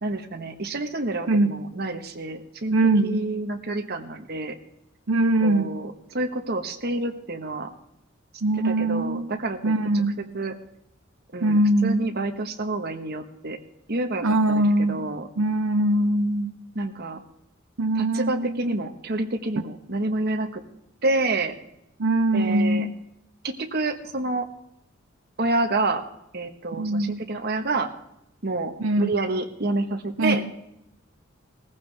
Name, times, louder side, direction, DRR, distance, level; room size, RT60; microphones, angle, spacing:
voice 1, 0.0-4.5 5.4-7.7 8.6-9.7 10.2-10.5 11.3-13.6 13.9-15.3 16.7-17.2 17.9-20.6 21.0-21.5 22.3-22.9 23.4-24.5 25.4-26.0 26.3-27.9 28.4-30.4, right 2 dB, 50° right, 5 dB, 1.5 m, -28 dB
voice 2, 2.7-3.2 5.1-5.8 8.4-9.3 9.6-10.2 11.4-12.0 14.2-15.1 15.4-16.5 17.8-18.6 22.0-22.9 26.8-27.2 28.8-29.1 30.2-30.4, right 1 dB, 90° right, 9 dB, 0.8 m, -22 dB
19.0 x 15.0 x 3.5 m, 0.82 s
head